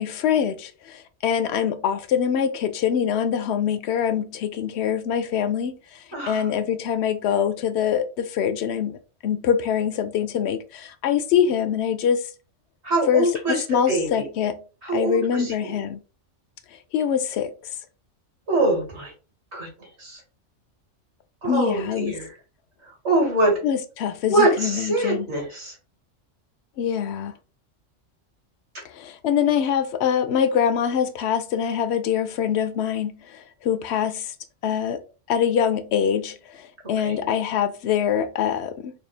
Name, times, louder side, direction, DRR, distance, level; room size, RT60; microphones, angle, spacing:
voice 1, 0.0-5.8 6.3-12.2 13.1-14.6 14.9-16.0 16.9-17.5 21.4-22.2 23.6-25.3 26.8-27.3 28.9-34.3 34.6-35.0 35.3-38.9, left 8 dB, 65° left, 0.8 m, -24 dB
voice 2, 6.1-6.4 12.8-14.3 14.8-15.8 18.5-19.1 19.5-20.2 21.4-22.3 22.9-23.5 24.3-25.8 37.0-37.3, right 2 dB, 60° right, 2.2 m, -24 dB
4.4 x 2.4 x 3.2 m
omnidirectional pair, 1.3 m